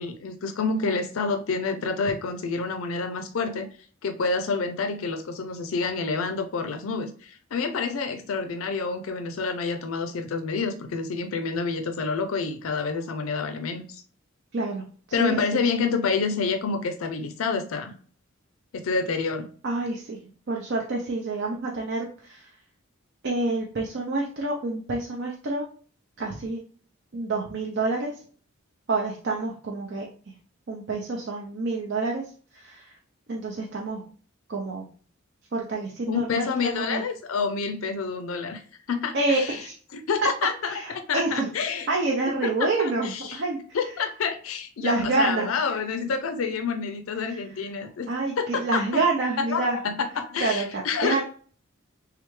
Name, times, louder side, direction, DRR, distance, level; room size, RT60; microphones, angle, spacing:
voice 1, 0.0-3.7 4.0-14.0 15.1-17.9 18.7-19.5 36.1-38.6 38.9-39.6 39.9-41.9 42.4-43.4 43.7-48.1 48.4-49.0 49.4-51.2, left 4 dB, 80° left, 0.4 m, -28 dB
voice 2, 14.5-14.8 15.1-15.6 19.6-20.2 20.5-22.5 23.2-25.7 26.2-26.6 27.1-28.2 28.9-30.1 30.7-33.0 33.3-34.0 34.5-34.9 35.5-37.0 39.1-39.7 40.6-41.5 41.9-43.8 44.8-45.5 47.2-47.4 48.1-49.8 50.4-51.2, right 3 dB, 60° right, 0.6 m, -28 dB
3.4 x 3.3 x 3.1 m
head